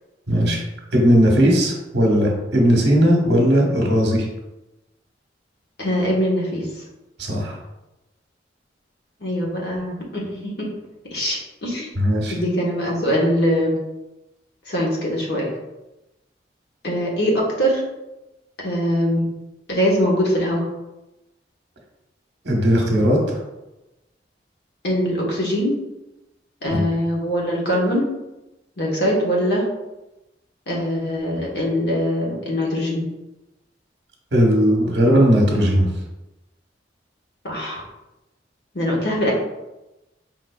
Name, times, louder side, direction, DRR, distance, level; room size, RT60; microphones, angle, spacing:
voice 1, 0.3-0.6 0.9-4.3 7.2-7.6 12.0-12.4 22.4-23.4 26.7-26.8 34.3-35.9, equal, 65° right, 0 dB, 1.1 m, -17 dB
voice 2, 5.8-6.7 9.2-10.5 11.1-11.9 12.3-13.7 14.7-15.5 16.8-17.8 18.6-19.2 19.7-20.7 24.8-25.7 26.6-28.0 28.8-29.6 30.7-33.0 37.4-37.8 38.7-39.3, equal, 65° left, -2 dB, 1.2 m, -22 dB
4.8 x 3.8 x 2.3 m, 0.98 s
head